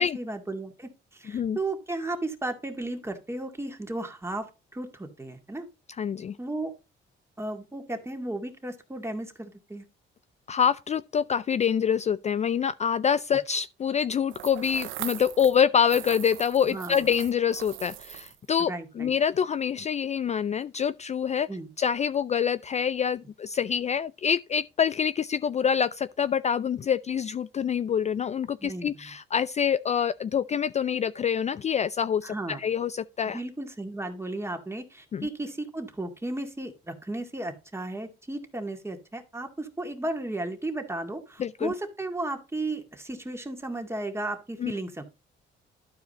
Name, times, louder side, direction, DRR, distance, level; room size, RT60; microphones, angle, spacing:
voice 1, 0.0-5.7 6.4-6.7 7.4-9.8 16.7-17.1 18.6-19.1 21.5-21.7 28.6-29.0 32.2-32.7 33.3-45.0, right 2 dB, 15° right, 2.1 m, -34 dB
voice 2, 6.0-6.4 10.5-21.5 21.8-33.4 35.1-35.3 41.4-41.7 44.6-44.7, left 7 dB, 35° left, 0.4 m, -26 dB
sound 1, 14.3-15.6 15.9-18.5, right 14 dB, 80° right, 0.6 m, -40 dB
12.0 x 4.9 x 4.1 m
cardioid pair, 90°, 20 cm